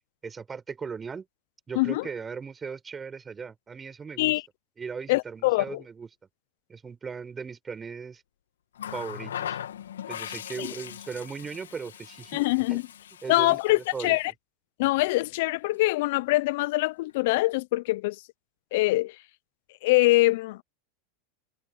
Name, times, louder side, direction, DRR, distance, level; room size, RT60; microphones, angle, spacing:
voice 1, 0.2-1.2 1.7-4.4 4.8-6.1 6.7-8.2 8.9-9.6 10.1-12.4 12.7-12.8 13.2-14.2, right 5 dB, 20° right, 4.8 m, -38 dB
voice 2, 1.7-2.1 4.2-4.4 5.1-5.8 10.6-10.7 12.3-12.8 13.3-14.3 14.8-18.2 18.7-19.1 19.8-20.6, left 20 dB, 65° left, 0.8 m, -24 dB
Water tap faucet, 8.8-14.3 15.5-15.7, left 10 dB, 85° left, 2.7 m, -40 dB
hypercardioid pair, 100°, 0 cm